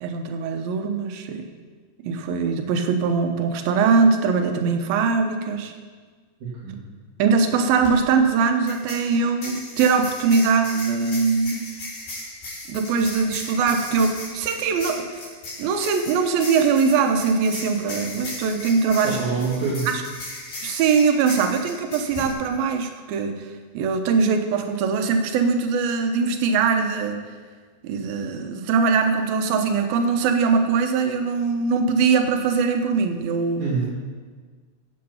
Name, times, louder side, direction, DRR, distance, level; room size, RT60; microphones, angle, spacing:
voice 1, 0.0-1.5 2.0-5.7 7.2-11.7 12.7-15.3 15.6-19.2 19.9-20.0 20.6-23.5 23.7-27.2 27.8-33.7, right 5 dB, 85° right, 5 dB, 2.7 m, -21 dB
sound 1, 7.7-7.9 8.7-22.3, left 2 dB, 90° left, 6.1 m, -36 dB
voice 2, 19.0-19.9 33.6-34.0, right 4 dB, 55° right, -8 dB, 3.8 m, -25 dB
16.5 x 7.7 x 5.6 m, 1.5 s
omnidirectional pair, 4.1 m